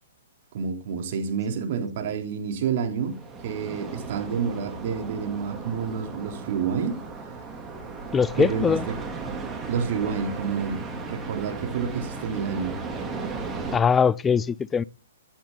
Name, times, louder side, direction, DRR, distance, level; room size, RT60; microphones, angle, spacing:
voice 1, 0.5-3.2 3.4-7.0 8.4-8.9 9.7-10.8 11.1-12.8, right 6 dB, 50° right, 3.6 m, -29 dB
sound 1, 3.0-13.8, right 4 dB, 15° right, 3.3 m, -36 dB
voice 2, 8.1-8.9 13.7-14.8, left 6 dB, 15° left, 0.5 m, -21 dB
16.0 x 10.0 x 4.1 m
hypercardioid pair, 125°, 0 cm